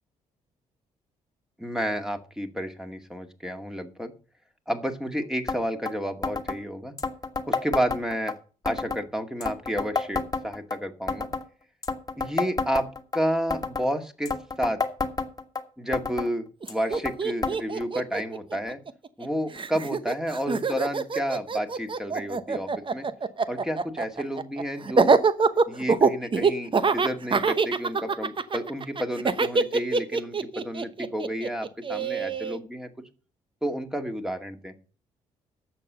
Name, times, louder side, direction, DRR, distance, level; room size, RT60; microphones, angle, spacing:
voice 1, 1.6-4.1 4.7-6.9 7.5-8.4 8.6-11.3 12.2-12.9 13.1-14.8 15.8-18.8 19.2-23.1 23.5-25.2 25.7-32.9 33.6-34.7, equal, 5° right, 6 dB, 2.1 m, -31 dB
sound 1, 5.5-5.6 5.9-6.0 6.2-6.6 7.0-8.3 8.7-9.0 9.4-10.8 11.1-11.5 11.8-13.2 13.5-13.9 14.3-15.6 15.9-16.3 16.7-17.2 17.4-17.6 17.8-17.9 18.7-18.8 19.6-19.7, left 4 dB, 25° left, 1.7 m, -29 dB
Laughter, 16.6-16.7 16.9-19.3 19.5-32.6, right 4 dB, 35° right, 1.0 m, -24 dB
10.5 x 7.1 x 6.7 m, 0.38 s
supercardioid pair, 55°, 14 cm